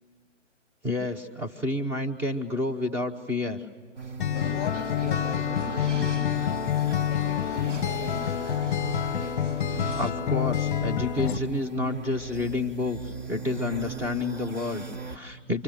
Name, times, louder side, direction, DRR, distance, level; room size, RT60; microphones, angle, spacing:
voice 1, 0.8-3.6 10.0-15.6, left 2 dB, 5° right, 3 dB, 0.7 m, -30 dB
sound 1, 4.0-15.2, right 4 dB, 35° right, 1.7 m, -38 dB
Acoustic guitar, 4.2-11.4, left 10 dB, 40° left, 0.7 m, -27 dB
voice 2, 4.3-6.7 7.1-8.9, left 9 dB, 15° left, 11 dB, 1.2 m, -41 dB
sound 2, 4.3-10.1, right 5 dB, 70° right, 1.1 m, -42 dB
29.5 x 24.5 x 7.5 m, 1.5 s
figure-of-eight pair, 130°, 37 cm